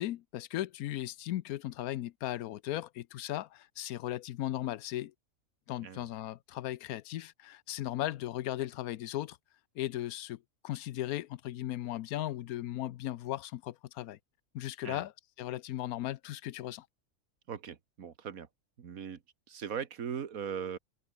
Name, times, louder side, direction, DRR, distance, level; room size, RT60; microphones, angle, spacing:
voice 1, 0.0-5.1 5.7-9.4 9.8-10.4 10.6-14.2 14.5-15.1 15.4-16.9, left 14 dB, 90° left, 1.1 m, -37 dB
voice 2, 17.5-18.5 18.8-19.2 19.5-20.8, right 7 dB, 75° right, 1.9 m, -39 dB
omnidirectional pair, 1.5 m